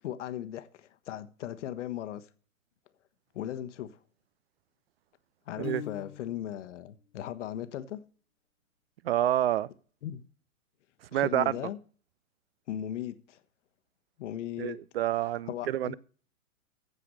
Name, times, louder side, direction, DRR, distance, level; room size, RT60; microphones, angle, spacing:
voice 1, 0.0-2.3 3.3-4.0 5.5-8.0 10.0-10.2 11.1-11.8 12.7-13.4 14.2-14.8 15.5-16.0, left 11 dB, 55° left, 1.2 m, -37 dB
Piano, 5.6-6.6, left 10 dB, 75° left, 1.0 m, -41 dB
voice 2, 9.0-9.7 11.1-11.4 14.6-15.9, right 12 dB, 45° right, 0.5 m, -28 dB
14.5 x 5.0 x 7.6 m
figure-of-eight pair, 110°, 42 cm